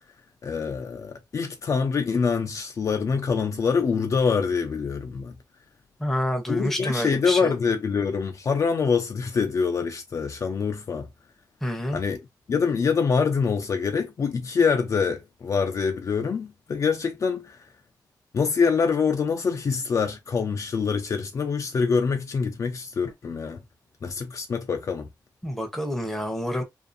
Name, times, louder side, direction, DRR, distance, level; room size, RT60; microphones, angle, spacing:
voice 1, 0.4-5.3 6.5-11.1 11.9-12.2 12.5-17.6 18.3-23.6 24.0-25.1, left 5 dB, 45° left, 0.4 m, -25 dB
voice 2, 6.0-7.5 11.6-12.0 25.4-26.6, equal, 5° left, 0.7 m, -28 dB
2.5 x 2.5 x 2.4 m
wide cardioid pair, 140°, 7 cm